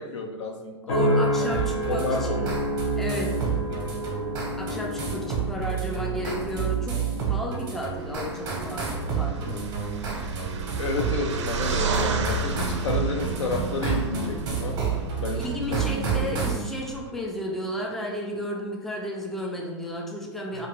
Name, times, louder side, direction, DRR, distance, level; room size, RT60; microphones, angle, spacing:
voice 1, 0.0-2.4 3.7-3.9 10.8-14.8 15.2-16.2, left 3 dB, 85° left, 4 dB, 0.5 m, -31 dB
sound 1, 0.9-15.4 15.9-16.3, equal, 55° left, 0.9 m, -32 dB
voice 2, 0.9-2.5 3.0-3.4 4.6-9.6 15.3-20.7, equal, ahead, -1 dB, 0.4 m, -33 dB
sound 2, 1.5-16.7, right 6 dB, 25° right, 0.8 m, -30 dB
sound 3, 8.0-17.1, right 4 dB, 75° right, 0.4 m, -33 dB
2.7 x 2.5 x 2.9 m, 1.2 s
hypercardioid pair, 115°, 15 cm